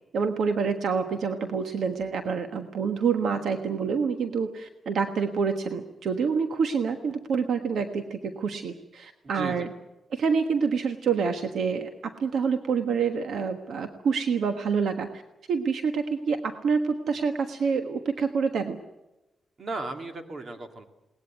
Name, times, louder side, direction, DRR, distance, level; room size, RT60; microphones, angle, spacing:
voice 1, 0.1-9.7 10.1-15.1 15.5-18.8, right 5 dB, 70° right, 7 dB, 1.4 m, -27 dB
voice 2, 9.4-9.7 19.6-20.8, right 3 dB, 40° right, 6 dB, 2.5 m, -35 dB
20.5 x 19.0 x 9.2 m, 0.97 s
wide cardioid pair, 140°, 0 cm